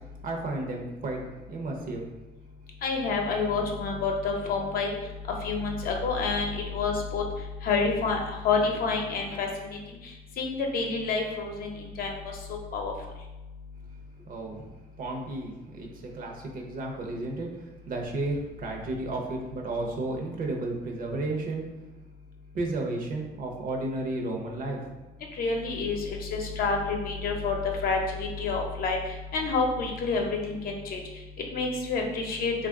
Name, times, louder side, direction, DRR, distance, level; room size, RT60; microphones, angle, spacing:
voice 1, 0.2-1.2 1.5-2.1 14.3-14.7 15.0-21.6 22.5-24.8, right 2 dB, 55° right, 0 dB, 0.8 m, -33 dB
voice 2, 2.8-4.9 5.4-7.2 7.6-9.8 10.4-11.7 12.0-12.1 12.7-12.9 25.4-29.0 29.3-31.0 31.5-32.5, left 4 dB, 60° left, 1 dB, 0.7 m, -28 dB
3.1 x 2.5 x 3.5 m, 1.1 s
cardioid pair, 110°, 17 cm